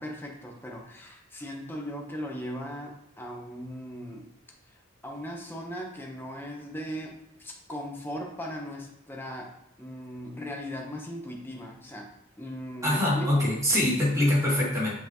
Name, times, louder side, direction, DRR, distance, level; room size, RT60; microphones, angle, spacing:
voice 1, 0.0-4.3 4.7-9.5 9.8-12.1 12.4-13.5, equal, 10° left, 0 dB, 1.0 m, -38 dB
voice 2, 12.8-15.0, left 1 dB, 15° right, -7 dB, 2.7 m, -24 dB
7.0 x 5.8 x 3.1 m, 0.76 s
head